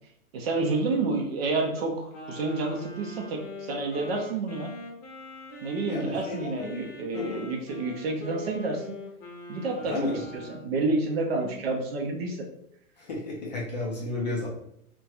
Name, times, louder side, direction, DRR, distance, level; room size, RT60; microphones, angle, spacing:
voice 1, 0.3-4.7 5.6-8.9 9.5-10.1 10.6-12.4, right 3 dB, 45° right, 2 dB, 0.5 m, -29 dB
Wind instrument woodwind instrument, 2.1-10.7, left 2 dB, 55° left, 0.8 m, -42 dB
voice 2, 5.9-7.5 9.8-10.3 11.3-11.5 13.0-14.5, left 2 dB, 30° left, -3 dB, 0.4 m, -33 dB
2.7 x 2.2 x 2.3 m, 0.73 s
hypercardioid pair, 140°, 44 cm